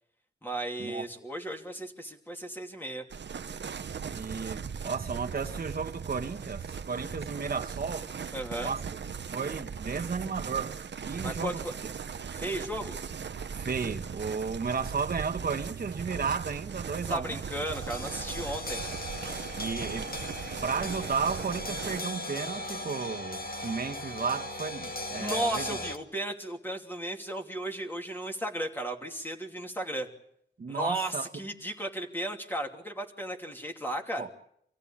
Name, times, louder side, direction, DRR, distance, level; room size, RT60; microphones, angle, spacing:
voice 1, 0.4-3.0 8.3-8.7 11.2-11.7 12.3-13.0 17.1-18.8 25.2-30.1 30.7-34.3, right 1 dB, 10° left, 2.9 m, -35 dB
sound 1, 3.1-22.0, right 6 dB, 75° right, 0.8 m, -38 dB
voice 2, 4.1-8.1 8.6-8.8 9.3-10.8 11.0-11.6 13.5-17.4 19.6-20.1 20.6-25.8 30.6-31.3 34.2-34.3, right 5 dB, 55° right, 1.4 m, -33 dB
sound 2, 17.5-26.0, left 1 dB, 55° left, 2.0 m, -38 dB
26.5 x 16.0 x 8.7 m
wide cardioid pair, 130°, 18 cm